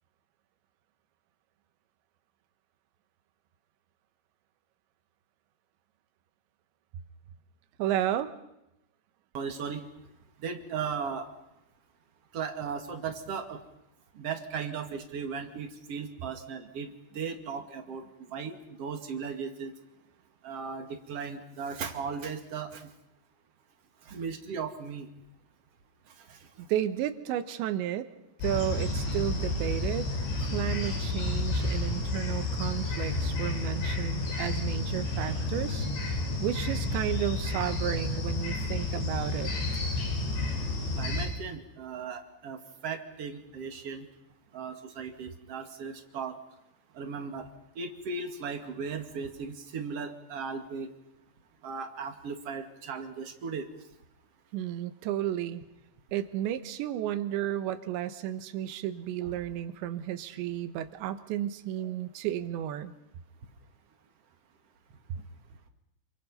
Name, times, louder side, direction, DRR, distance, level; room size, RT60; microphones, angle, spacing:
voice 1, 7.8-8.3 26.6-28.1 28.4-30.1 30.4-35.9 36.4-39.5 54.5-55.6 56.1-62.9 65.1-65.2, right 11 dB, 90° right, 11 dB, 3.4 m, -32 dB
voice 2, 9.3-9.8 10.4-11.3 12.3-13.6 14.2-18.0 18.3-19.7 20.4-22.9 24.1-25.1 26.3-26.4 33.8-33.9 36.3-36.4 40.9-44.1 44.5-46.3 46.9-47.5 47.8-50.9 51.6-53.7, right 5 dB, 40° right, 5 dB, 2.6 m, -37 dB
sound 1, 28.4-41.3, left 2 dB, 85° left, 7.8 m, -31 dB
28.5 x 26.0 x 5.6 m, 0.87 s
omnidirectional pair, 5.1 m